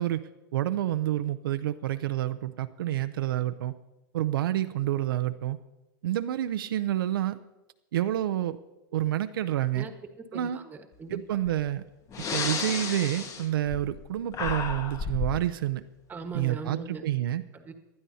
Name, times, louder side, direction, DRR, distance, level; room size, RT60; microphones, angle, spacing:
voice 1, 0.0-3.7 4.1-5.6 6.0-7.4 7.9-8.6 8.9-9.9 10.3-10.6 11.1-11.8 12.2-15.8 16.3-17.4, right 13 dB, 80° right, 9 dB, 0.6 m, -28 dB
voice 2, 10.2-11.2 16.1-17.0 17.5-17.7, right 4 dB, 15° right, 5 dB, 1.3 m, -40 dB
Breathing, 11.5-11.6 12.1-14.1 14.3-15.4, left 5 dB, 30° left, 1.1 m, -32 dB
19.0 x 12.0 x 2.8 m, 1.0 s
hypercardioid pair, 130°, 11 cm